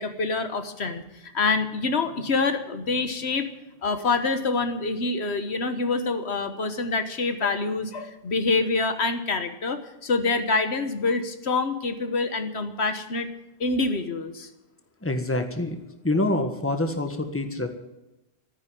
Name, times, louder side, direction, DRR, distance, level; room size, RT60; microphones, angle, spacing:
voice 1, 0.0-3.5 3.8-13.3 13.6-14.5, left 3 dB, 75° left, 8 dB, 1.5 m, -26 dB
voice 2, 15.0-15.8 16.0-17.7, left 2 dB, 10° left, 6 dB, 1.5 m, -26 dB
14.0 x 10.0 x 9.1 m, 0.92 s
omnidirectional pair, 1.1 m